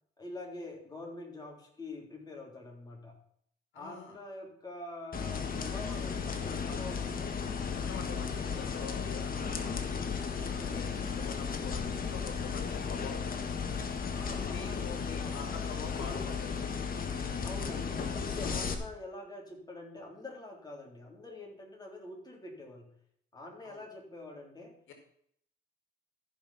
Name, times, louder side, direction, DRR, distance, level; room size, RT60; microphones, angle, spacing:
voice 1, 0.2-3.2 3.7-8.6 10.5-11.0 14.1-14.8 15.1-15.5 17.4-22.9 23.3-24.7, left 2 dB, 20° left, 0 dB, 3.9 m, -46 dB
voice 2, 3.7-4.1 7.9-10.0 10.5-13.5 14.3-17.1 23.6-23.8 24.9-25.0, left 5 dB, 80° left, 4 dB, 2.2 m, -46 dB
sound 1, 5.1-18.7, left 6 dB, 45° left, 1.6 m, -35 dB
14.0 x 5.6 x 5.9 m, 0.66 s
cardioid pair, 90°, 20 cm